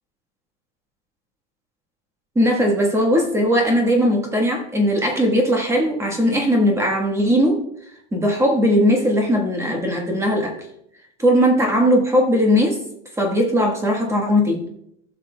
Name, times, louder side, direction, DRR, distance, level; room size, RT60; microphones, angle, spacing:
voice 1, 2.3-7.6 8.1-10.5 11.2-12.8 13.2-14.7, equal, 5° right, 1 dB, 1.2 m, -18 dB
16.0 x 6.8 x 2.2 m, 0.76 s
supercardioid pair, 155°, 39 cm